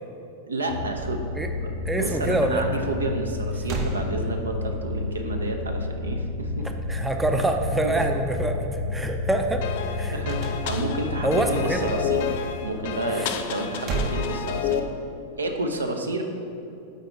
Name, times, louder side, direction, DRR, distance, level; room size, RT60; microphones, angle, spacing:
voice 1, 0.4-1.2 1.6-1.7 1.9-6.7 7.8-8.0 10.1-14.8 15.4-16.2, right 2 dB, 75° right, 5 dB, 0.6 m, -30 dB
sound 1, 0.7-13.6, left 3 dB, 90° right, 1.4 m, -31 dB
voice 2, 1.9-2.6 6.6-9.6 9.9-10.2 11.2-11.9 13.1-13.4, right 2 dB, 10° right, 5 dB, 0.4 m, -26 dB
sound 2, 3.2-3.3 3.6-4.8 10.3-11.1 13.5-15.1, right 3 dB, 40° right, 0.7 m, -32 dB
sound 3, 9.6-14.8, left 8 dB, 50° left, 0.4 m, -30 dB
8.1 x 4.1 x 4.8 m, 2.7 s
figure-of-eight pair, 90°, 0 cm